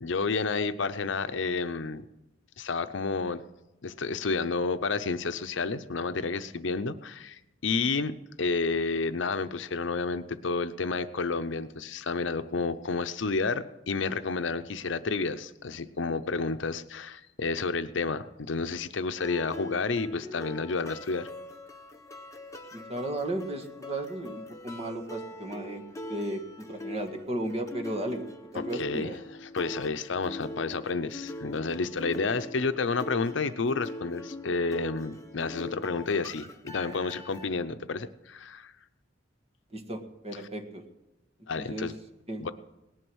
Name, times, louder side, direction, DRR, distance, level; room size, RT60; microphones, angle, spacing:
voice 1, 0.0-2.0 2.6-3.4 3.8-21.3 28.7-29.1 29.5-38.7 41.5-41.9 42.4-42.5, left 4 dB, 70° left, 10 dB, 0.7 m, -30 dB
sound 1, 19.2-37.5, left 1 dB, 15° left, 1.1 m, -42 dB
voice 2, 22.7-25.8 26.1-28.2 28.5-29.2 39.7-40.8 41.6-41.9 42.3-42.5, right 1 dB, 30° right, 4 dB, 1.7 m, -35 dB
18.5 x 11.0 x 6.3 m, 0.97 s
head